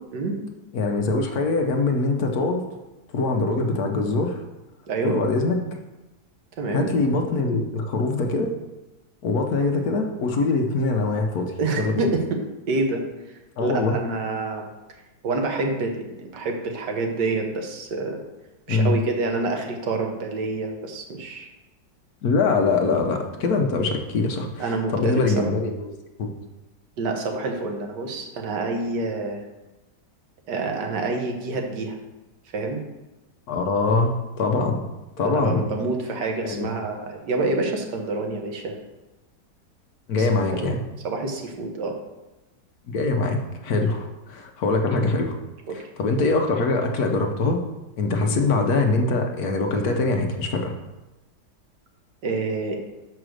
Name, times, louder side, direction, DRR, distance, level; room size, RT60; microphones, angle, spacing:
voice 1, 0.7-2.6 3.1-4.4 5.0-5.6 6.7-8.5 9.2-12.1 13.6-14.0 18.7-18.9 22.2-25.9 26.2-26.3 33.5-34.8 35.2-35.7 36.4-36.7 40.1-40.8 42.9-45.4 46.0-47.6 48.0-50.7, left 3 dB, 65° left, 3 dB, 1.3 m, -23 dB
voice 2, 4.9-5.2 6.6-6.9 11.6-12.4 12.7-13.0 13.6-14.7 15.2-18.2 18.7-21.5 24.6-25.5 27.0-29.4 30.5-32.0 32.5-32.8 35.2-38.8 40.2-40.7 41.0-42.0 45.7-45.8 48.2-48.3 52.2-52.8, right 3 dB, 80° right, 3 dB, 1.7 m, -27 dB
6.2 x 5.0 x 6.3 m, 1.0 s
omnidirectional pair, 1.9 m